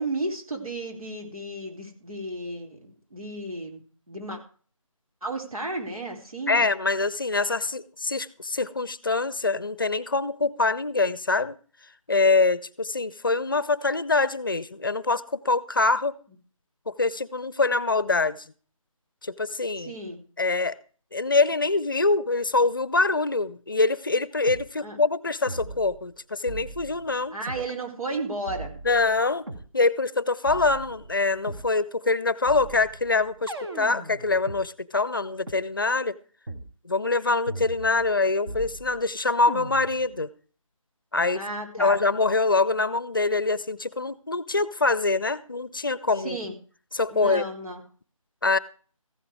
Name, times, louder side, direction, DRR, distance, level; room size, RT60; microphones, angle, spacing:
voice 1, 0.0-3.8 4.1-4.4 5.2-6.7 19.8-20.2 24.8-25.0 27.3-28.7 41.3-42.0 46.2-46.5 47.1-47.8, right 2 dB, 85° right, 4.4 m, -33 dB
voice 2, 6.5-11.6 12.1-16.1 16.9-18.4 19.2-19.9 20.4-20.8 21.1-27.4 28.8-29.4 29.7-36.1 36.8-40.3 41.1-41.4 41.8-46.4 46.9-47.4 48.4-48.6, left 3 dB, 40° left, 0.6 m, -24 dB
sound 1, 24.5-24.7 25.5-26.1 26.5-27.7 28.5-29.7 30.5-31.7 32.5-34.6 35.5-35.6 36.5-36.7 37.5-38.2 38.5-39.1 39.5-40.1, right 2 dB, 45° right, 2.0 m, -39 dB
15.0 x 9.6 x 4.8 m
figure-of-eight pair, 170°, 18 cm